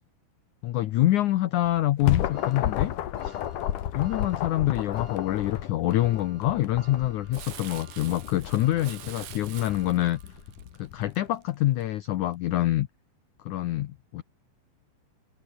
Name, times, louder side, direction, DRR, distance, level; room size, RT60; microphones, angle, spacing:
voice 1, 0.6-2.9 3.2-3.4 3.9-10.2 10.8-12.9 13.4-14.2, left 14 dB, 85° left, 1.7 m, -26 dB
sound 1, 1.6-11.1, left 11 dB, 60° left, 2.6 m, -33 dB
sound 2, 2.3-10.7 11.2-11.3 12.4-12.5, right 4 dB, 50° right, 7.4 m, -55 dB
Crumpling crinkling, 7.3-11.8 12.3-12.4, right 14 dB, 70° right, 2.9 m, -46 dB
open air
omnidirectional pair, 4.7 m